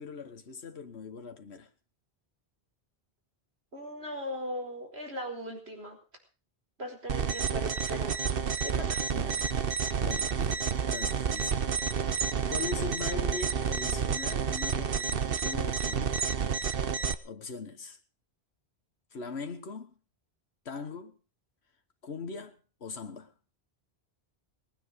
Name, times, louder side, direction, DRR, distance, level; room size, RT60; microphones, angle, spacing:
voice 1, 0.0-1.7 9.1-11.6 12.5-16.2 17.2-18.0 19.1-19.9 20.6-21.1 22.0-23.3, left 4 dB, 85° left, 1.6 m, -41 dB
voice 2, 3.7-6.0 6.8-8.4 8.6-9.0, equal, 80° right, 5.0 m, -39 dB
sound 1, 7.1-17.1, right 6 dB, 65° right, 1.2 m, -30 dB
20.5 x 9.4 x 6.7 m
omnidirectional pair, 1.1 m